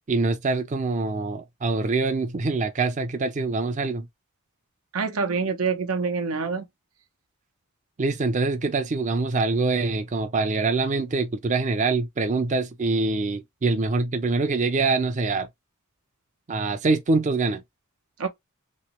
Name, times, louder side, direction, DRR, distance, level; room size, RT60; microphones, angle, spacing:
voice 1, 0.1-4.1 8.0-15.5 16.5-17.6, right 3 dB, 35° right, 0.5 m, -24 dB
voice 2, 4.9-6.7 18.2-18.3, right 5 dB, 80° right, 0.8 m, -26 dB
3.1 x 3.0 x 2.9 m
head